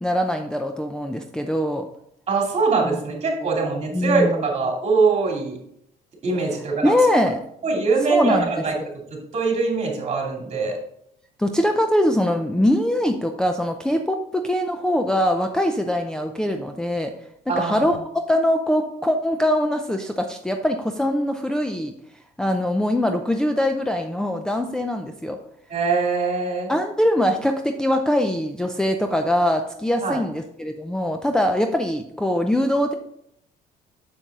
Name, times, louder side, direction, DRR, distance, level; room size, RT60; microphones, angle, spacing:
voice 1, 0.0-1.8 2.8-3.0 3.4-3.7 3.9-4.4 6.8-7.4 8.1-8.5 11.4-17.1 17.5-18.0 18.3-21.9 22.4-25.4 26.7-32.9, left 1 dB, 5° left, 3 dB, 0.5 m, -22 dB
voice 2, 2.3-5.6 6.2-6.9 7.6-8.7 9.3-10.8 17.5-17.9 25.7-26.7 30.0-30.2, right 4 dB, 40° right, -1 dB, 2.8 m, -22 dB
7.0 x 7.0 x 3.7 m, 0.73 s
cardioid pair, 110°, 17 cm